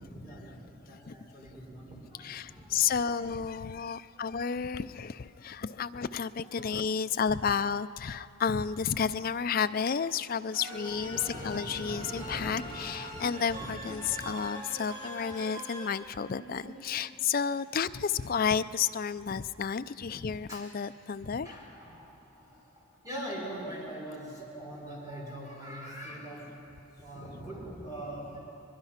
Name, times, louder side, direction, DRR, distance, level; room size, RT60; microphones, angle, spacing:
voice 1, 0.0-3.3 4.1-4.4 6.4-7.2 10.9-13.2 13.5-14.5 16.2-16.9 20.1-20.2 20.5-20.7 21.4-26.7 27.0-28.4, right 1 dB, 15° right, -4 dB, 4.7 m, -43 dB
voice 2, 2.2-21.5, left 6 dB, 45° left, 13 dB, 0.4 m, -31 dB
sound 1, 10.5-15.8, equal, 40° right, 6.8 m, -42 dB
22.5 x 22.5 x 5.8 m, 2.9 s
head